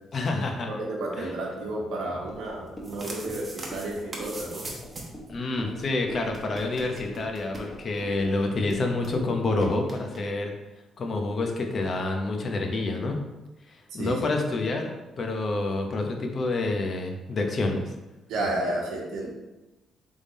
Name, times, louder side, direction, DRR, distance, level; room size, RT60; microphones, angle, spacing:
voice 1, 0.1-0.7 1.2-1.3 5.3-10.5 11.0-13.2 13.9-14.9 15.2-17.9, left 2 dB, 45° left, 3 dB, 0.8 m, -28 dB
voice 2, 0.7-4.6 14.0-14.2 18.3-19.3, right 1 dB, 80° right, -1 dB, 1.1 m, -31 dB
sound 1, 2.3-9.9, equal, 20° left, 1.3 m, -43 dB
sound 2, 2.6-5.3 5.5-5.6 5.8-5.9 6.3-8.1 8.4-8.5 8.7-9.2 9.6-10.2, right 2 dB, 30° right, 1.1 m, -41 dB
3.6 x 3.5 x 4.1 m, 1.0 s
cardioid pair, 90°, 0 cm